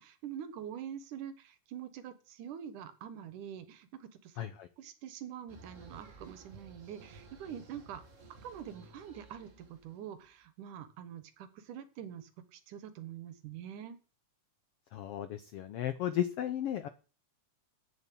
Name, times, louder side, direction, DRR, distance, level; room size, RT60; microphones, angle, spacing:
voice 1, 0.0-4.5 4.8-8.0 8.4-14.0, right 9 dB, 80° right, 13 dB, 2.7 m, -45 dB
voice 2, 4.4-4.7 14.9-16.9, left 11 dB, 80° left, 12 dB, 1.3 m, -34 dB
sound 1, 5.5-10.4, right 3 dB, 30° right, 1.6 m, -55 dB
8.7 x 7.2 x 8.4 m, 0.35 s
omnidirectional pair, 3.6 m